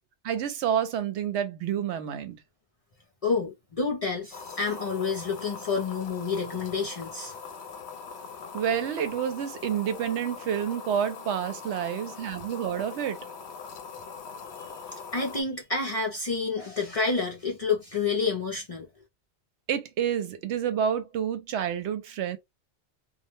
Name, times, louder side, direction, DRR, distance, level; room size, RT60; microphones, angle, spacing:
voice 1, 0.2-2.4 8.5-13.2 19.7-22.4, right 9 dB, 75° right, 0.9 m, -29 dB
voice 2, 3.2-7.3 14.6-14.7 15.1-18.9, left 4 dB, 40° left, 0.5 m, -29 dB
sound 1, 4.3-15.4, left 5 dB, 70° left, 0.8 m, -42 dB
2.2 x 2.1 x 3.0 m
omnidirectional pair, 1.2 m